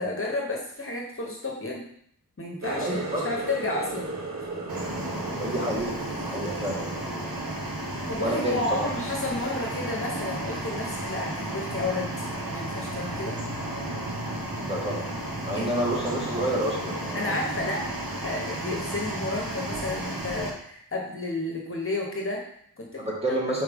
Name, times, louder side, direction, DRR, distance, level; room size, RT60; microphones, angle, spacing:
voice 1, 0.0-1.8 2.4-4.1 8.1-13.4 15.5-15.7 17.1-17.8 18.2-23.4, left 2 dB, 35° left, -1 dB, 1.1 m, -32 dB
Water tap faucet, 2.6-8.1 8.5-9.0 9.4-9.7 10.4-10.5, right 3 dB, 45° right, 1.0 m, -36 dB
voice 2, 2.8-3.3 5.4-7.5 8.2-8.9 14.7-15.1 15.4-17.4 23.0-23.6, right 1 dB, 15° right, -4 dB, 1.9 m, -29 dB
sound 1, 4.7-20.5, right 1 dB, 65° right, 1.3 m, -33 dB
5.4 x 4.8 x 3.6 m, 0.66 s
wide cardioid pair, 70°, 37 cm